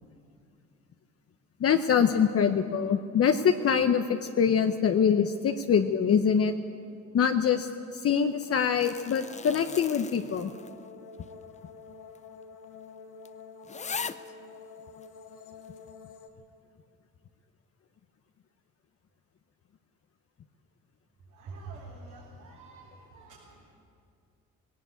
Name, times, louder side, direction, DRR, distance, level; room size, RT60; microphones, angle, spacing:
voice 1, 1.6-6.6 7.1-10.5, left 7 dB, 50° left, 7 dB, 0.8 m, -24 dB
sound 1, 8.4-10.9 11.2-11.3 12.2-12.3 12.6-12.7 13.3-13.4 13.6-14.3 15.0-15.1, left 5 dB, 25° left, 0.6 m, -39 dB
sound 2, 10.3-16.3, left 5 dB, 85° left, 1.8 m, -48 dB
voice 2, 21.4-23.7, right 3 dB, 80° right, -5 dB, 4.1 m, -46 dB
18.5 x 17.5 x 8.3 m, 2.4 s
cardioid pair, 90°, 30 cm